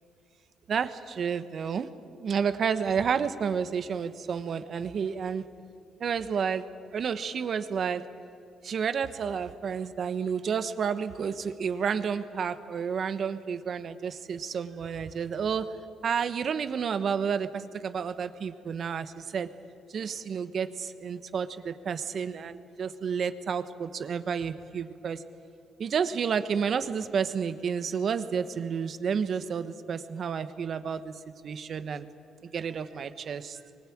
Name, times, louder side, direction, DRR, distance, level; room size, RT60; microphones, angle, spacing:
voice 1, 0.7-1.9 2.2-5.5 6.0-6.7 6.9-8.0 8.6-15.7 16.0-19.5 19.9-25.2 25.8-31.1 31.4-32.1 32.5-33.6, right 6 dB, 55° right, 11 dB, 1.1 m, -30 dB
23.5 x 19.5 x 8.7 m, 2.4 s
cardioid pair, 90°, 0 cm